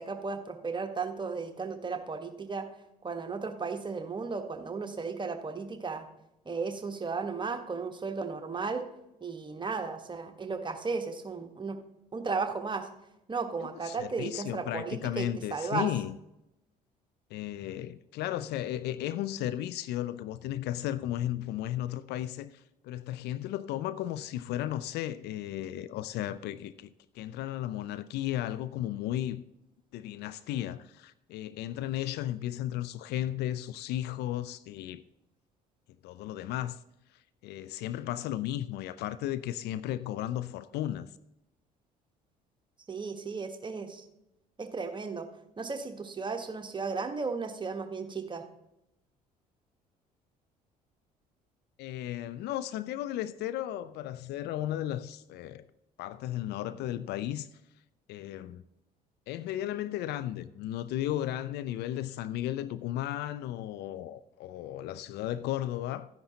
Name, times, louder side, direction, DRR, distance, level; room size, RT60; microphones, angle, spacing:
voice 1, 0.0-2.7 3.0-6.1 6.4-8.9 9.2-11.8 12.1-12.9 13.3-15.9 42.9-44.0 44.6-45.3 45.6-48.4, right 4 dB, 25° right, 1.2 m, -35 dB
voice 2, 13.6-16.2 17.3-29.4 29.9-35.0 36.0-36.8 37.1-41.1 51.8-55.7 56.0-57.5 58.1-58.6 59.3-66.1, left 13 dB, 55° left, 0.4 m, -35 dB
13.0 x 10.0 x 2.9 m
figure-of-eight pair, 55°, 20 cm